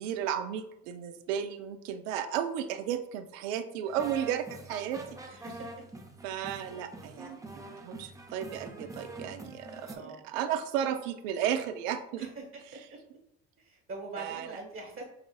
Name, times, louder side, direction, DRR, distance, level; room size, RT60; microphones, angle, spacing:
voice 1, 0.0-5.0 5.3-5.4 6.2-12.3 14.2-14.6, right 9 dB, 85° right, 9 dB, 0.5 m, -34 dB
sound 1, 3.9-10.0, right 2 dB, 10° right, 0.6 m, -45 dB
voice 2, 9.9-10.2 12.2-12.3 13.6-15.0, right 2 dB, 35° right, 1 dB, 1.1 m, -43 dB
5.6 x 2.4 x 2.3 m, 0.81 s
supercardioid pair, 80°, 38 cm